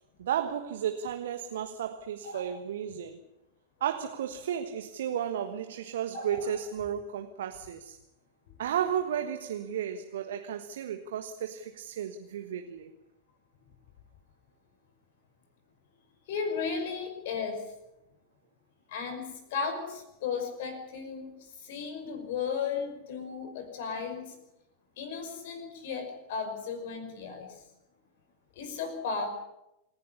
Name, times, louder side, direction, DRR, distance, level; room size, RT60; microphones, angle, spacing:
voice 1, 0.2-3.2 3.8-8.0 8.6-12.9, right 9 dB, 60° right, 1.4 m, -33 dB
voice 2, 6.1-6.6 8.5-8.6 16.3-17.7 18.9-21.3 21.6-24.3 25.0-27.5 28.6-29.3, left 5 dB, 55° left, 5.6 m, -35 dB
27.5 x 11.5 x 9.9 m
figure-of-eight pair, 90°, 0 cm